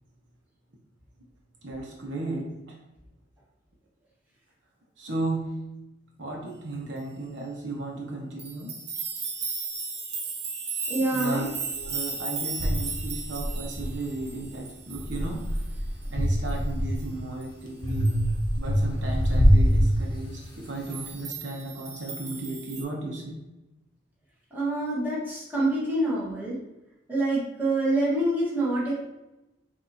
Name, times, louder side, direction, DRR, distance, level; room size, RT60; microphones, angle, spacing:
voice 1, 1.6-2.8 5.0-5.5 6.2-8.8 11.0-11.5 11.7-15.7 16.0-18.1 18.6-23.4, right 2 dB, 90° right, -1 dB, 1.0 m, -35 dB
sound 1, 8.4-15.7 16.0-16.1 16.5-16.6 17.0-17.1 17.4-17.5 17.9-18.4 20.8-22.8, right 5 dB, 65° right, 0.9 m, -36 dB
voice 2, 10.9-11.4 24.5-26.6 27.1-28.9, right 1 dB, 10° right, -7 dB, 1.4 m, -26 dB
sound 2, 11.8-11.9 12.6-14.4 14.9-17.2 17.8-20.6, equal, 25° left, 0.8 m, -24 dB
6.3 x 2.7 x 2.8 m, 0.96 s
head